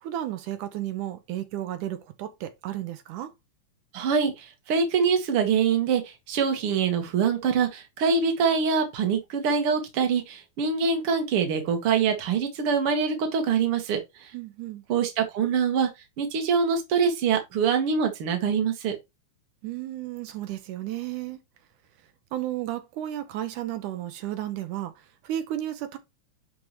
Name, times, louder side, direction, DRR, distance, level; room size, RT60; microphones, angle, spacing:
voice 1, 0.0-3.3 14.3-14.8 19.6-21.4 22.3-26.0, right 13 dB, 85° right, 2.3 m, -33 dB
voice 2, 3.9-14.3 14.9-15.9 16.2-19.0, right 6 dB, 50° right, 2.1 m, -24 dB
10.5 x 4.8 x 3.0 m
omnidirectional pair, 3.5 m